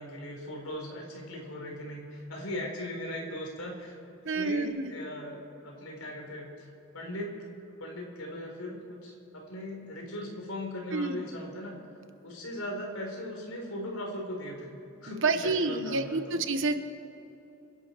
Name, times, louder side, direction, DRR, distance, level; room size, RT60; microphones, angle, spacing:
voice 1, 0.0-3.9 4.3-7.4 7.8-11.7 12.2-14.7 15.0-16.4, left 1 dB, 90° left, 0 dB, 4.1 m, -39 dB
voice 2, 4.2-4.9 10.9-11.3 15.1-16.8, right 3 dB, 65° right, 9 dB, 1.1 m, -29 dB
27.0 x 11.5 x 4.6 m, 2.9 s
head